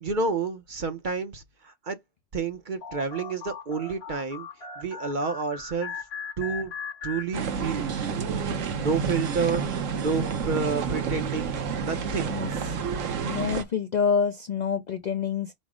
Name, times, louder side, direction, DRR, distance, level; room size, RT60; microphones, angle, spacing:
voice 1, 0.0-2.0 2.3-4.5 4.8-5.9 6.4-6.7 7.0-7.9 8.8-9.6 9.9-12.3, right 4 dB, 50° right, 0.7 m, -29 dB
sound 1, 2.8-7.9, left 6 dB, 55° left, 1.1 m, -39 dB
sound 2, 7.3-13.6, right 6 dB, 75° right, 1.1 m, -29 dB
voice 2, 13.2-15.5, left 6 dB, 75° left, 0.4 m, -27 dB
5.2 x 2.0 x 4.8 m
omnidirectional pair, 1.3 m